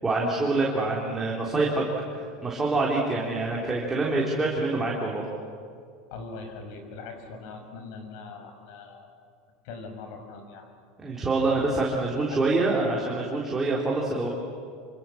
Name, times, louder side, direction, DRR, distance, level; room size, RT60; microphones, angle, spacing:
voice 1, 0.0-1.8 2.1-5.3 11.0-14.3, right 3 dB, 15° right, -3 dB, 3.8 m, -26 dB
voice 2, 6.1-9.1 9.6-10.7 12.3-12.5, left 4 dB, 65° left, 5 dB, 6.0 m, -41 dB
27.0 x 26.0 x 7.3 m, 2.3 s
supercardioid pair, 130°, 3 cm